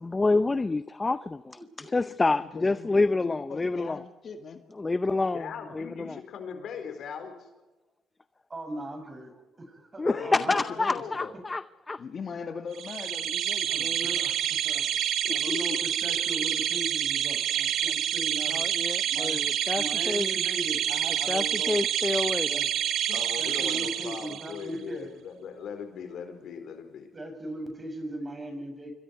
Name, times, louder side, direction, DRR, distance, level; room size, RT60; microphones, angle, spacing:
voice 1, 0.0-4.0 4.8-5.5 5.7-6.2 10.0-12.0 18.5-20.3 21.3-22.7, left 3 dB, 25° left, 13 dB, 0.6 m, -28 dB
voice 2, 1.6-1.9 8.5-10.6 13.7-14.9 15.3-18.6 19.0-19.4 19.8-21.9 22.5-22.7 23.4-25.1 27.1-28.9, right 1 dB, 25° right, 5 dB, 7.1 m, -39 dB
voice 3, 2.3-4.6 10.1-11.0 12.0-14.3 15.2-15.8 16.1-16.5, left 5 dB, 50° left, 6 dB, 2.2 m, -40 dB
voice 4, 5.3-7.3 10.0-11.3 23.1-27.1, left 6 dB, 70° left, 6 dB, 4.6 m, -39 dB
sound 1, 12.8-24.6, right 10 dB, 75° right, 1.2 m, -28 dB
27.0 x 24.0 x 4.8 m, 1.2 s
cardioid pair, 90°, 0 cm